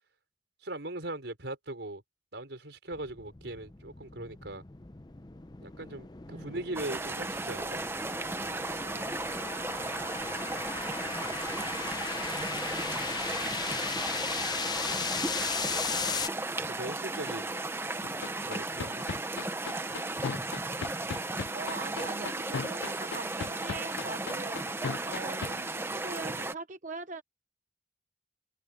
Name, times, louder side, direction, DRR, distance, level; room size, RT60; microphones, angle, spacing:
voice 1, 0.6-2.0 2.3-4.6 5.6-7.8 16.7-17.6 18.4-19.1, right 2 dB, 85° right, 4.8 m, -40 dB
sound 1, 2.9-16.3, left 5 dB, 25° left, 0.6 m, -37 dB
sound 2, 6.7-26.5, right 2 dB, 15° right, 0.8 m, -35 dB
voice 2, 12.3-13.3 21.5-24.6 25.0-27.2, right 3 dB, 45° right, 0.8 m, -42 dB
sound 3, 18.0-25.5, left 6 dB, 85° left, 0.4 m, -35 dB
head